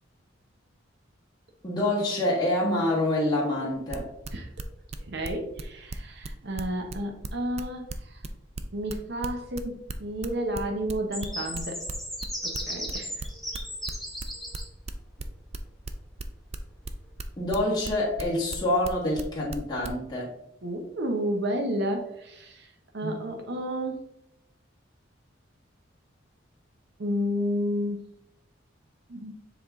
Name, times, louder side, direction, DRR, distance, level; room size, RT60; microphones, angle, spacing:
voice 1, 1.6-4.1 17.4-20.3 23.0-23.1, left 1 dB, 20° left, -6 dB, 1.5 m, -26 dB
sound 1, 3.9-20.0, right 4 dB, 35° right, 0.4 m, -37 dB
voice 2, 5.1-7.8 8.7-11.8 12.4-13.1 20.6-22.6 22.9-23.9 27.0-28.0 29.1-29.3, equal, 60° right, 3 dB, 0.8 m, -31 dB
sound 2, 11.1-14.7, equal, ahead, 1.1 m, -36 dB
7.3 x 3.6 x 3.6 m, 0.80 s
head